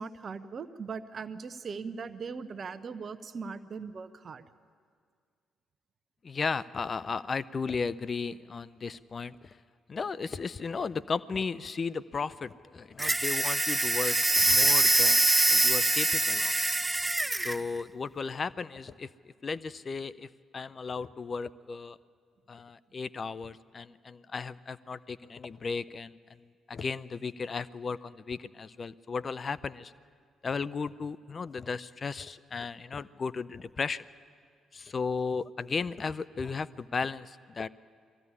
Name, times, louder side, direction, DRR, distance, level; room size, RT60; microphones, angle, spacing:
voice 1, 0.0-4.4, right 5 dB, 50° right, 12 dB, 0.8 m, -39 dB
voice 2, 6.2-9.6 9.9-16.5 17.4-19.1 19.4-22.0 22.5-26.1 26.7-29.9 30.4-34.0 34.7-37.7, left 5 dB, 45° left, 16 dB, 0.5 m, -35 dB
sound 1, 13.0-17.6, right 2 dB, 20° right, 0.4 m, -24 dB
21.5 x 15.0 x 9.8 m, 2.1 s
hypercardioid pair, 45°, 0 cm